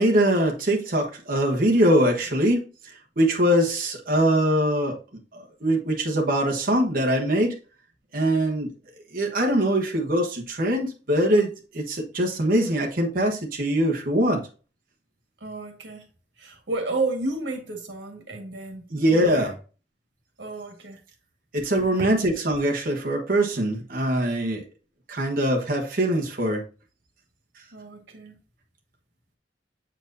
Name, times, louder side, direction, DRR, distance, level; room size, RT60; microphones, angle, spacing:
voice 1, 0.0-2.6 3.2-5.0 5.3-7.5 8.1-8.7 9.1-11.5 11.7-14.4 18.9-19.5 21.5-24.6 25.1-26.6, right 1 dB, 50° right, 0 dB, 1.3 m, -22 dB
voice 2, 15.4-16.0 16.4-19.5 20.4-21.0 22.0-22.1 27.7-28.4, right 2 dB, 80° right, 3 dB, 1.7 m, -32 dB
7.6 x 4.5 x 2.7 m, 0.36 s
head